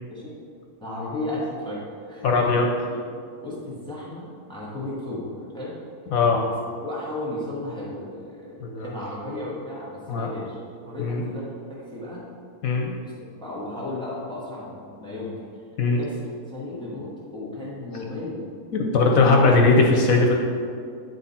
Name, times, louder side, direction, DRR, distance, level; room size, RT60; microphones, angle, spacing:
voice 1, 0.8-2.6 2.9-5.7 6.8-11.4 11.7-12.2 13.0-13.1 13.4-15.3 16.0-18.4 18.9-19.3 19.6-19.8, left 2 dB, 5° left, -7 dB, 1.3 m, -34 dB
voice 2, 2.2-2.7 6.1-6.5 8.6-8.9 10.1-10.3 11.0-11.2 12.6-12.9 15.8-16.0 18.7-20.4, left 3 dB, 70° left, 1 dB, 1.0 m, -19 dB
9.3 x 3.9 x 4.2 m, 2.3 s
omnidirectional pair, 1.7 m